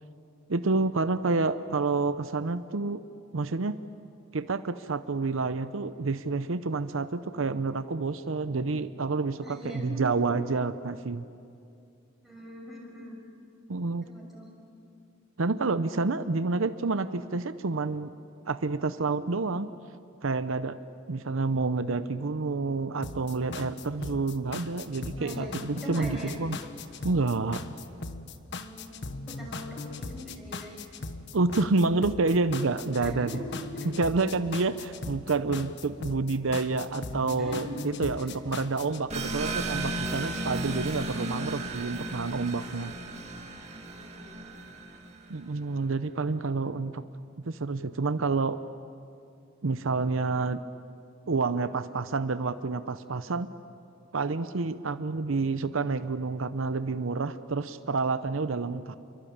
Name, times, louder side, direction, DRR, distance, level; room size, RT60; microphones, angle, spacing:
voice 1, 0.5-3.0 3.3-3.8 4.3-11.2 13.7-14.0 15.4-18.1 18.5-19.7 20.2-20.8 21.1-26.6 27.0-27.6 31.3-33.3 33.8-42.9 45.3-47.0 47.4-48.6 49.6-50.6 51.3-53.5 54.1-59.0, right 3 dB, 75° right, 12 dB, 0.7 m, -28 dB
voice 2, 9.4-10.1 12.2-13.2 14.0-14.5 25.2-26.3 28.5-28.9 29.3-30.8 33.0-33.4 33.7-34.1 37.4-37.8 38.2-38.3 44.0-44.6, right 1 dB, ahead, -2 dB, 6.6 m, -42 dB
sound 1, 23.0-39.0, left 3 dB, 60° left, 1.2 m, -39 dB
sound 2, 39.1-45.4, right 2 dB, 35° right, 2.5 m, -35 dB
28.5 x 23.0 x 8.7 m, 2.5 s
head